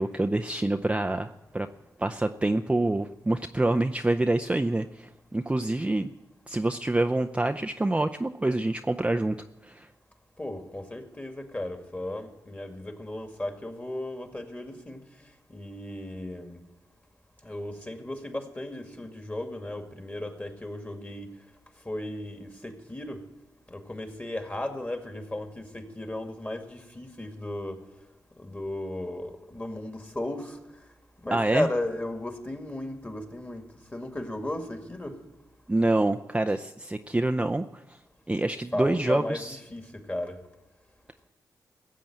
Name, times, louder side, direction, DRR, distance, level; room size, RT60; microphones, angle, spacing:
voice 1, 0.0-1.7 2.0-6.1 6.5-9.4 9.6-9.9 31.3-31.7 35.7-38.0 38.3-39.6, right 2 dB, 15° right, 0.5 m, -26 dB
voice 2, 10.4-15.0 15.5-16.6 17.4-21.3 21.9-23.2 23.7-27.8 28.4-30.6 31.2-33.6 33.9-35.1 38.7-40.4, left 1 dB, 20° left, 2.2 m, -35 dB
15.0 x 7.6 x 8.9 m
cardioid pair, 55°, 8 cm